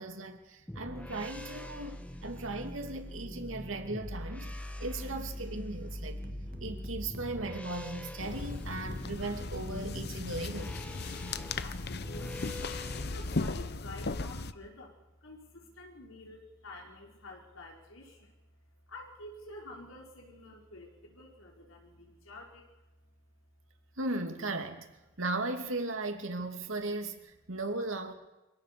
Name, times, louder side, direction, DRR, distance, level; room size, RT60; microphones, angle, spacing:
voice 1, 0.0-6.3 6.6-10.7 24.0-24.9 25.2-28.1, right 2 dB, 75° right, 2.7 m, -37 dB
sound 1, 0.7-13.5, left 1 dB, 5° left, 1.5 m, -42 dB
sound 2, 6.2-8.7, right 1 dB, 45° right, 2.0 m, -49 dB
sound 3, 8.2-14.5, left 3 dB, 55° left, 0.8 m, -37 dB
voice 2, 11.6-12.6 13.1-14.9 15.2-18.4 18.9-23.1, left 1 dB, 80° left, 5.1 m, -49 dB
25.5 x 17.0 x 7.0 m
head